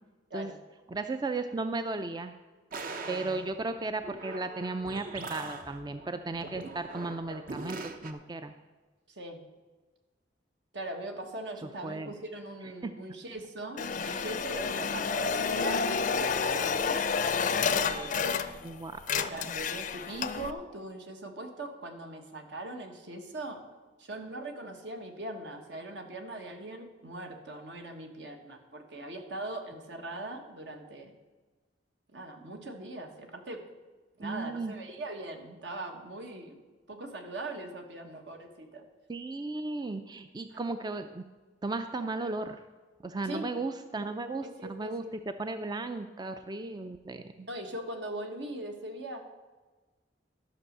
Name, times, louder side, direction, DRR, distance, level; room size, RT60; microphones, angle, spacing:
voice 1, 0.9-2.3 3.1-8.5 11.8-12.1 12.6-12.9 14.0-14.2 18.6-19.4 34.2-34.7 39.1-41.2 41.6-42.6 43.0-47.5, right 3 dB, 25° right, 9 dB, 0.4 m, -35 dB
sound 1, 2.7-8.1, right 3 dB, 50° right, 0.8 m, -42 dB
voice 2, 3.0-3.4 9.1-9.4 10.7-17.0 17.7-18.3 19.3-23.6 24.0-31.1 32.1-33.6 34.2-36.6 36.9-38.8 40.5-40.6 43.2-43.5 44.4-45.1 47.5-49.2, right 2 dB, 70° right, 4 dB, 1.5 m, -41 dB
sound 2, 13.8-18.7 19.0-20.5, left 5 dB, 45° left, 0.5 m, -30 dB
12.5 x 6.2 x 6.6 m, 1.3 s
head